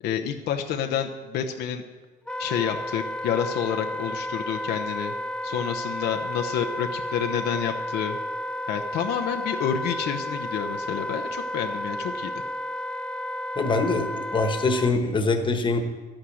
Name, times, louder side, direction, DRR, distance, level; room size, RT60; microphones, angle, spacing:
voice 1, 0.0-1.8 2.4-5.1 5.4-8.2 8.7-12.3, left 8 dB, 75° left, 4 dB, 0.8 m, -29 dB
Wind instrument woodwind instrument, 2.3-14.9, left 1 dB, 5° left, 0.4 m, -32 dB
voice 2, 13.6-15.8, left 3 dB, 30° left, 6 dB, 1.4 m, -24 dB
11.5 x 8.9 x 6.3 m, 1.3 s
cardioid pair, 110°, 17 cm